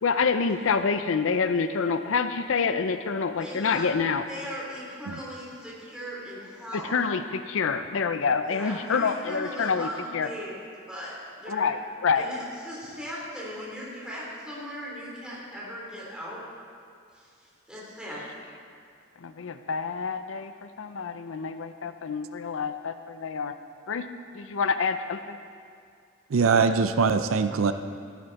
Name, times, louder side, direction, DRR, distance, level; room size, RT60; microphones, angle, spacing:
voice 1, 0.0-4.2 6.7-10.3 11.5-12.3 19.2-23.5 23.9-24.1 24.3-25.4, left 5 dB, 75° left, 10 dB, 0.5 m, -27 dB
voice 2, 3.4-3.9 4.3-7.0 8.5-10.6 10.9-11.7 12.2-16.4 17.1-17.3 17.7-18.3, equal, 5° right, -7 dB, 3.4 m, -38 dB
voice 3, 26.3-27.7, right 5 dB, 85° right, 9 dB, 0.5 m, -22 dB
13.0 x 11.0 x 4.1 m, 2.2 s
head